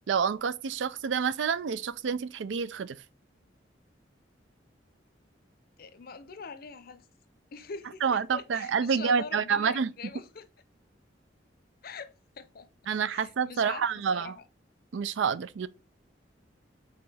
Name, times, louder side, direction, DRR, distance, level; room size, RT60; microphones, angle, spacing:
voice 1, 0.1-3.0 8.0-9.9 12.9-14.3 14.9-15.7, right 6 dB, 85° right, 0.4 m, -28 dB
voice 2, 5.8-7.1 7.5-10.5 11.8-12.7 13.1-14.4, left 5 dB, 55° left, 0.6 m, -44 dB
4.9 x 4.0 x 4.8 m
head